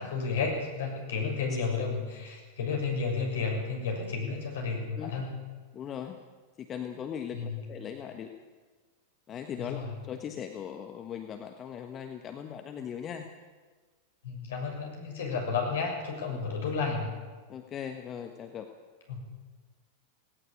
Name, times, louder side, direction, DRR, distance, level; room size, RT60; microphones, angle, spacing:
voice 1, 0.0-5.3 7.3-7.6 9.7-9.9 14.2-17.1 19.1-19.3, left 4 dB, 60° left, 1 dB, 6.9 m, -32 dB
voice 2, 5.7-6.2 6.6-8.3 9.3-13.3 16.3-16.4 17.5-18.7, left 8 dB, 30° left, 5 dB, 1.4 m, -39 dB
18.0 x 17.5 x 8.7 m, 1.4 s
figure-of-eight pair, 90°, 0 cm